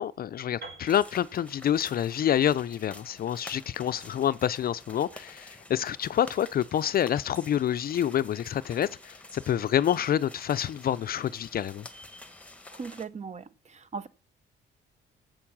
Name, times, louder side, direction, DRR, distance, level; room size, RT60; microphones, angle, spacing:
voice 1, 0.0-11.9, left 10 dB, 50° left, 0.4 m, -27 dB
Piano, 0.6-4.5, right 3 dB, 60° right, 6.3 m, -50 dB
sound 1, 0.9-13.0, left 2 dB, 5° left, 1.3 m, -49 dB
voice 2, 12.7-14.1, right 5 dB, 35° right, 0.8 m, -39 dB
8.5 x 7.9 x 6.0 m
cardioid pair, 90°, 20 cm